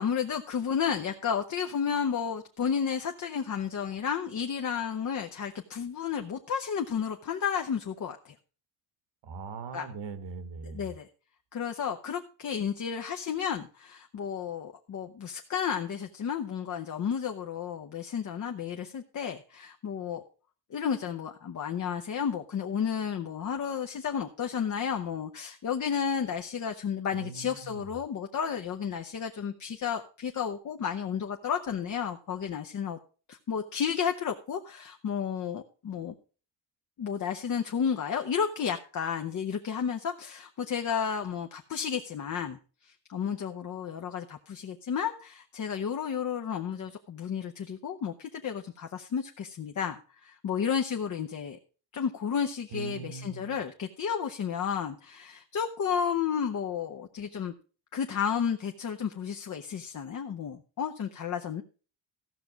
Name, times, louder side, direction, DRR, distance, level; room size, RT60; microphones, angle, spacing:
voice 1, 0.0-8.3 9.7-9.9 10.6-11.1 11.5-20.2 20.7-33.0 33.3-36.1 37.0-51.6 51.9-57.5 57.9-61.6, left 7 dB, 40° left, 5 dB, 0.8 m, -32 dB
voice 2, 9.2-10.9 27.1-27.9 52.7-53.5, right 5 dB, 65° right, 11 dB, 1.6 m, -40 dB
14.5 x 5.9 x 5.1 m, 0.37 s
cardioid pair, 120°, 46 cm